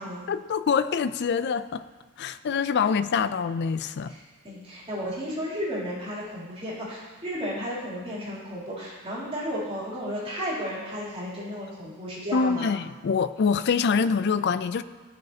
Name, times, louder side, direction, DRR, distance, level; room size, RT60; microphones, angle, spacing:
voice 1, 0.3-1.8 2.2-4.1 12.3-14.8, left 5 dB, 50° left, 13 dB, 0.4 m, -25 dB
voice 2, 4.1-12.7, equal, 25° right, -8 dB, 3.1 m, -33 dB
16.0 x 6.4 x 2.8 m, 1.4 s
head